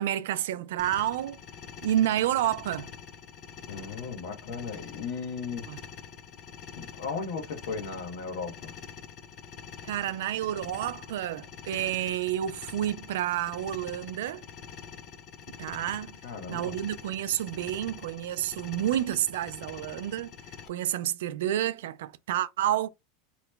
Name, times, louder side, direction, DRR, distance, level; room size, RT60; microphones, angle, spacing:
voice 1, 0.0-1.4 1.8-2.9 5.7-5.8 9.8-14.4 15.6-16.2 16.5-20.3 20.7-22.9, right 12 dB, 80° right, 0.3 m, -29 dB
sound 1, 0.8-20.7, left 7 dB, 30° left, 0.3 m, -45 dB
voice 2, 3.7-5.7 6.8-8.7 16.2-16.7, left 5 dB, 65° left, 1.0 m, -36 dB
2.9 x 2.2 x 3.2 m
supercardioid pair, 170°, 0 cm